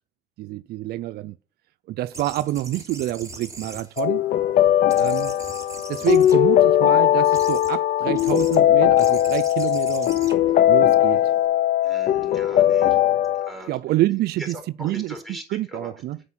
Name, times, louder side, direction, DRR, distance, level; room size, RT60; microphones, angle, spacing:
voice 1, 0.4-1.4 1.9-4.2 5.0-5.4 5.9-10.1 10.7-11.3 13.7-15.2 15.5-16.2, right 15 dB, 70° right, 0.5 m, -27 dB
sound 1, 2.1-4.6 4.9-6.8 7.3-7.8 8.2-8.6 9.0-11.5, right 3 dB, 15° right, 3.6 m, -41 dB
sound 2, 4.0-13.5, left 12 dB, 55° left, 0.6 m, -19 dB
voice 2, 11.8-13.0 13.4-13.8 14.4-15.9, equal, ahead, 4.2 m, -39 dB
8.1 x 5.2 x 7.5 m
cardioid pair, 110°, 17 cm